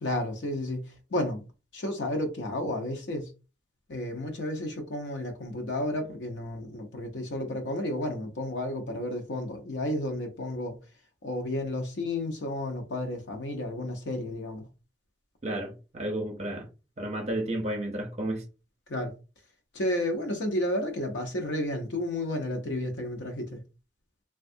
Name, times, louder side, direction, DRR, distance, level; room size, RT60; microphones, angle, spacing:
voice 1, 0.0-0.8 1.1-1.4 1.7-3.3 3.9-10.8 11.2-14.7 18.9-19.1 19.7-23.6, left 1 dB, 75° left, 0.6 m, -32 dB
voice 2, 15.4-16.7 17.0-18.4, right 1 dB, 35° right, 0.7 m, -32 dB
3.2 x 2.3 x 2.6 m
head